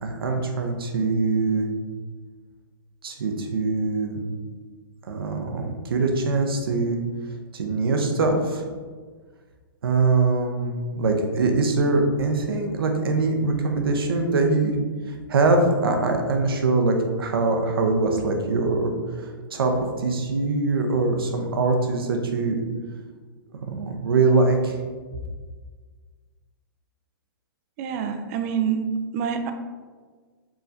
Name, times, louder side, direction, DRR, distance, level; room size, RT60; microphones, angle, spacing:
voice 1, 0.0-1.7 3.0-4.2 5.0-7.0 7.5-8.7 9.8-14.8 15.1-18.9 19.2-22.6 23.5-24.8, right 3 dB, 85° right, 3 dB, 0.7 m, -23 dB
voice 2, 27.8-29.5, right 7 dB, 40° right, 7 dB, 0.4 m, -26 dB
4.8 x 3.1 x 2.6 m, 1.5 s
hypercardioid pair, 135°, 12 cm